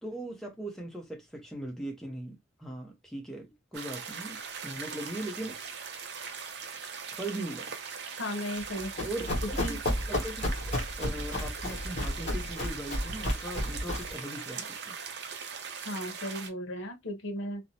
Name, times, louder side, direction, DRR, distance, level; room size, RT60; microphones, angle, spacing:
voice 1, 0.0-5.6 7.2-7.7 9.0-9.8 10.1-10.7 11.0-15.0, right 1 dB, ahead, 0.6 m, -39 dB
sound 1, 3.7-16.5, right 6 dB, 55° right, 0.5 m, -40 dB
voice 2, 8.2-9.1 9.4-9.8 15.8-17.6, equal, 70° left, 0.7 m, -36 dB
Run, 8.6-14.2, left 1 dB, 35° left, 1.0 m, -32 dB
2.5 x 2.0 x 2.7 m
head